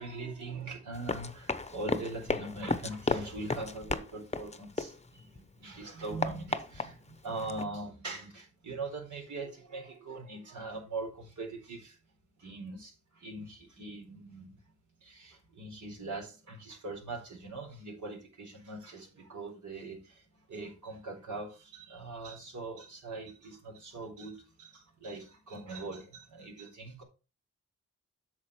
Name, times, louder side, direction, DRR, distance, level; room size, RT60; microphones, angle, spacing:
voice 1, 0.0-12.0 12.4-14.6 15.0-27.0, right 2 dB, 70° right, 4.1 m, -42 dB
Run, 0.9-5.4 5.7-7.6, left 3 dB, 20° left, 0.8 m, -35 dB
8.6 x 6.3 x 4.7 m
wide cardioid pair, 85°, 30 cm